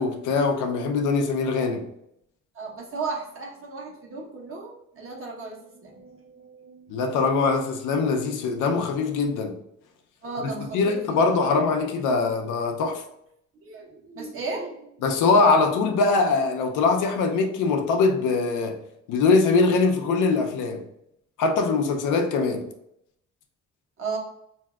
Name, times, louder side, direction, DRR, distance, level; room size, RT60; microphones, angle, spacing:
voice 1, 0.0-1.8 6.9-9.5 10.7-13.0 15.0-18.8 19.1-20.8 21.4-22.7, left 4 dB, 90° left, 0.6 m, -22 dB
voice 2, 2.5-7.2 10.2-11.5 13.6-15.4 24.0-24.2, right 4 dB, 45° right, 1.0 m, -36 dB
3.3 x 2.7 x 2.3 m
cardioid pair, 90°, 30 cm